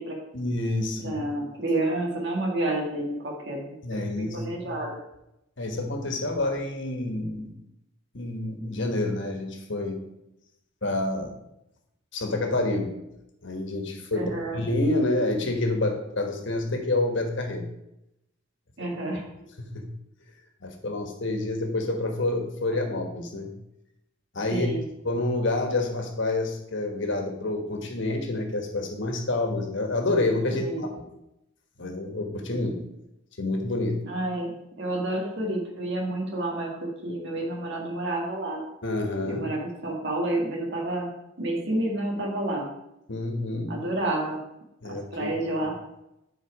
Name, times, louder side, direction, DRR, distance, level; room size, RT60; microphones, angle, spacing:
voice 1, 0.3-1.2 3.8-4.8 5.6-7.7 8.1-10.0 10.8-11.4 12.1-12.9 13.4-17.7 19.6-19.9 20.6-23.5 24.3-24.7 25.0-30.9 31.8-32.8 33.4-34.0 38.8-39.5 43.1-43.8 44.8-45.3, left 2 dB, 60° left, 4 dB, 1.4 m, -28 dB
voice 2, 1.0-3.6 3.9-5.0 14.2-14.6 18.8-19.2 24.5-24.8 30.5-30.9 34.0-36.7 37.0-38.7 39.2-41.1 41.4-42.7 43.7-44.4 45.1-45.8, right 1 dB, 60° right, -1 dB, 1.8 m, -29 dB
10.0 x 4.6 x 4.8 m, 0.85 s
head